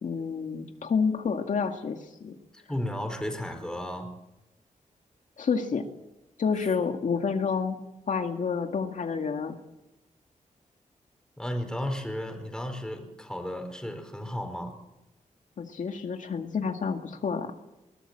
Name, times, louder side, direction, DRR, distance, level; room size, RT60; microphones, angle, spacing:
voice 1, 0.0-2.4 5.4-5.9 6.4-7.8 8.1-9.6 15.6-17.5, left 5 dB, 70° left, 5 dB, 2.1 m, -29 dB
voice 2, 2.5-4.1 6.7-6.8 11.4-14.7, left 1 dB, 5° left, 5 dB, 4.9 m, -34 dB
21.5 x 20.0 x 7.6 m, 0.95 s
wide cardioid pair, 95°, 14 cm